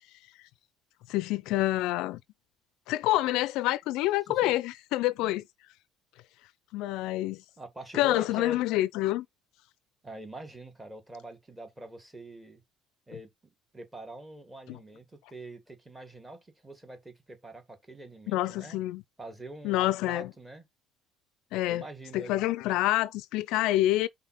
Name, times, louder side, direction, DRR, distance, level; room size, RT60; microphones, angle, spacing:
voice 1, 1.1-2.2 2.9-5.4 6.7-7.4 7.9-9.3 14.7-14.8 18.3-19.0 19.6-20.3 21.5-21.8 22.1-24.1, left 16 dB, 65° left, 0.4 m, -27 dB
voice 2, 7.6-8.6 10.0-12.6 13.1-18.8 19.2-20.6 21.7-22.4, right 2 dB, 10° right, 1.8 m, -45 dB
5.6 x 4.1 x 5.8 m
cardioid pair, 165°, 0 cm